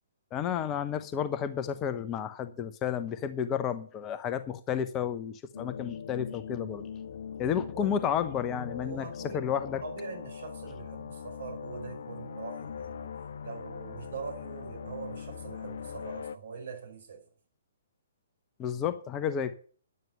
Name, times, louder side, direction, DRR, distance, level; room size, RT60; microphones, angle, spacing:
voice 1, 0.3-6.9 7.4-9.1 9.3-9.8 18.6-19.5, left 8 dB, 20° left, 0.9 m, -31 dB
sound 1, 5.5-16.4, left 7 dB, 55° left, 0.7 m, -41 dB
voice 2, 8.8-13.1 13.4-17.2, right 5 dB, 60° right, 5.1 m, -43 dB
11.0 x 9.4 x 5.5 m
figure-of-eight pair, 125°, 0 cm